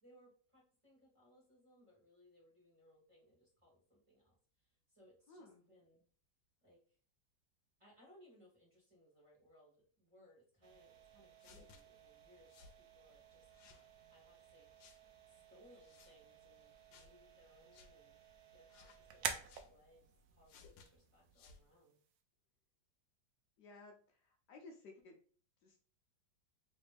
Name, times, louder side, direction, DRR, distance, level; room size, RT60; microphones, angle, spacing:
voice 1, 0.0-6.0 6.6-6.8 7.8-13.5 14.1-14.7 15.3-18.2 18.5-22.0, equal, 20° right, -6 dB, 1.4 m, -67 dB
voice 2, 5.3-5.6 23.6-25.2 25.6-25.8, left 3 dB, 70° left, 1 dB, 1.2 m, -57 dB
sound 1, 10.6-22.2, right 7 dB, 70° right, 0.8 m, -51 dB
sound 2, 11.4-11.8 12.5-12.8 13.5-13.9 14.8-15.0 15.8-16.1 16.9-17.1 17.7-17.9 18.7-19.0 19.5-19.7 20.5-20.9 21.3-21.6, left 5 dB, 90° left, 1.3 m, -61 dB
3.2 x 3.2 x 3.4 m, 0.42 s
omnidirectional pair, 2.0 m